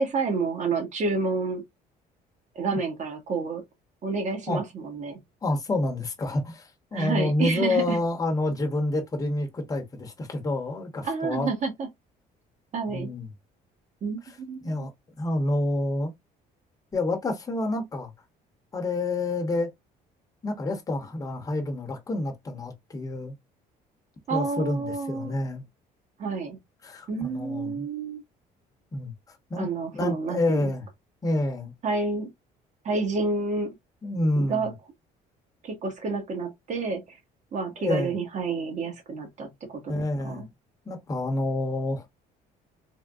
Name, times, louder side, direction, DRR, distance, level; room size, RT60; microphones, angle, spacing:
voice 1, 0.0-1.6 2.5-3.6 4.0-5.2 6.9-8.0 11.0-11.9 12.7-13.1 14.0-14.9 24.3-25.3 26.2-26.6 27.1-28.2 29.6-30.6 31.8-32.3 32.8-33.7 34.4-34.7 35.6-37.2 37.5-40.5, right 4 dB, 45° right, 1.2 m, -29 dB
voice 2, 5.4-11.5 12.9-13.3 14.6-14.9 15.2-16.1 16.9-18.1 18.7-19.7 20.4-23.3 24.3-25.6 26.8-27.9 28.9-29.1 29.5-29.7 29.9-30.9 31.2-31.7 34.0-34.7 37.8-38.1 39.9-40.5 40.9-42.0, left 2 dB, 20° left, 0.9 m, -28 dB
3.5 x 2.1 x 2.3 m
cardioid pair, 110°, 17 cm